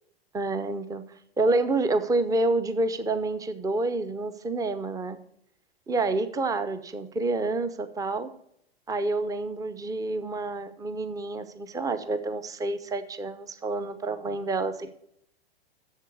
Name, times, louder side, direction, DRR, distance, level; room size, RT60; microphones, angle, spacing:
voice 1, 0.3-1.0 1.4-5.2 5.9-8.3 8.9-14.9, right 2 dB, 10° right, 11 dB, 0.8 m, -28 dB
7.4 x 7.1 x 7.9 m, 0.72 s
hypercardioid pair, 110°, 31 cm